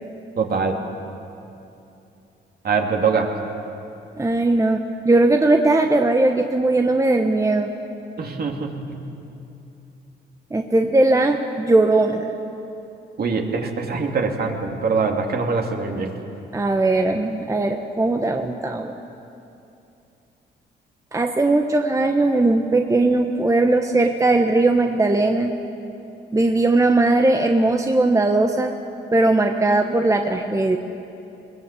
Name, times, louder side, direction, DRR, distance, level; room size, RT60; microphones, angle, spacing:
voice 1, 0.4-0.8 2.6-3.3 8.2-9.0 13.2-16.1, right 5 dB, 50° right, 2 dB, 2.8 m, -23 dB
voice 2, 4.2-7.7 10.5-12.3 16.5-18.9 21.1-25.5 26.3-28.7 29.1-30.8, right 2 dB, 15° right, 4 dB, 1.1 m, -19 dB
22.0 x 19.0 x 8.4 m, 2.8 s
cardioid pair, 90°, 20 cm